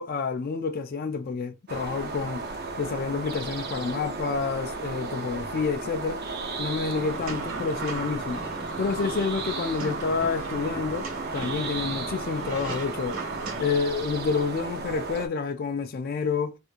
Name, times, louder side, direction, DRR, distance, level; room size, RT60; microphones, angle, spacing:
voice 1, 0.0-2.4 2.8-6.2 6.6-8.4 8.8-11.1 11.3-13.2 13.6-16.6, left 5 dB, 45° left, 0.3 m, -29 dB
sound 1, 1.7-15.3, right 3 dB, 45° right, 0.6 m, -35 dB
sound 2, 6.9-13.6, right 4 dB, 75° right, 1.4 m, -36 dB
3.4 x 2.9 x 2.4 m
head